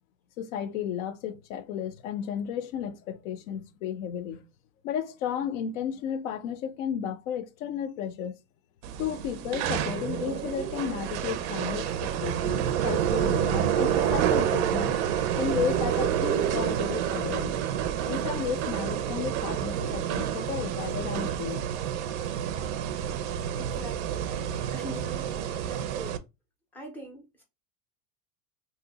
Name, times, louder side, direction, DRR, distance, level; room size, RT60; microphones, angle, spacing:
voice 1, 0.4-4.4 4.8-8.3 9.0-15.0 15.3-17.6 18.0-21.7, left 8 dB, 55° left, 0.5 m, -33 dB
sound 1, 8.8-26.2, right 9 dB, 50° right, 0.5 m, -28 dB
voice 2, 23.1-25.3 25.6-26.2 26.7-27.4, right 1 dB, 5° left, 0.5 m, -43 dB
2.7 x 2.1 x 3.8 m
supercardioid pair, 145°, 48 cm